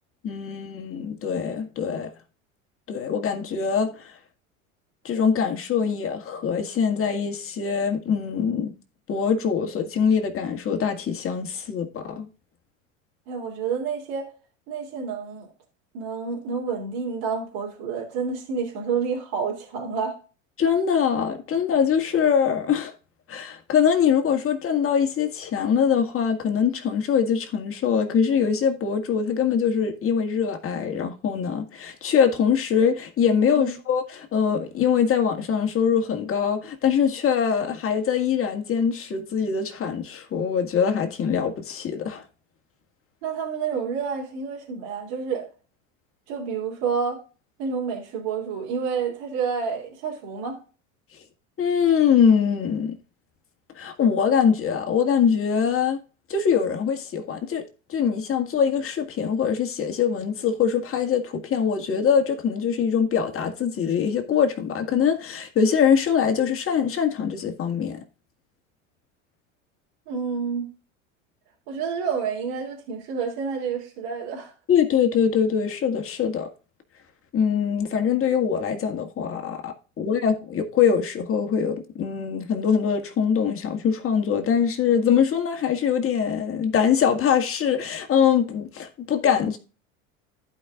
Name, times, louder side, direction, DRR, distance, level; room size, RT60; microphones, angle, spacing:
voice 1, 0.2-2.1 2.9-4.1 5.0-8.7 9.1-12.3 20.6-22.9 23.3-42.2 51.6-53.0 53.8-56.0 56.3-57.6 57.9-68.0 74.7-76.5 77.3-89.6, left 7 dB, 35° left, 2.0 m, -23 dB
voice 2, 13.3-14.3 14.7-15.5 15.9-20.2 33.5-33.7 43.2-45.4 46.3-47.2 47.6-50.6 70.1-70.7 71.7-74.5, right 6 dB, 60° right, 3.0 m, -29 dB
15.0 x 5.3 x 2.4 m
hypercardioid pair, 85°, 39 cm